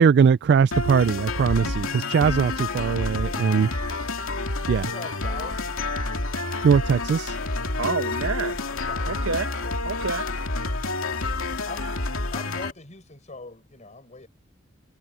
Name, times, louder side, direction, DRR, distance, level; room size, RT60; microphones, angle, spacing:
voice 1, 0.0-3.7 4.7-4.8 6.6-7.4, right 6 dB, 55° right, 0.3 m, -20 dB
sound 1, 0.7-12.7, left 3 dB, 85° left, 2.5 m, -29 dB
voice 2, 4.6-5.7 8.7-9.1 9.6-9.7 11.7-11.9 12.3-14.3, left 3 dB, 35° left, 5.4 m, -41 dB
voice 3, 7.7-8.6 9.0-10.3, right 4 dB, 75° right, 1.0 m, -29 dB
head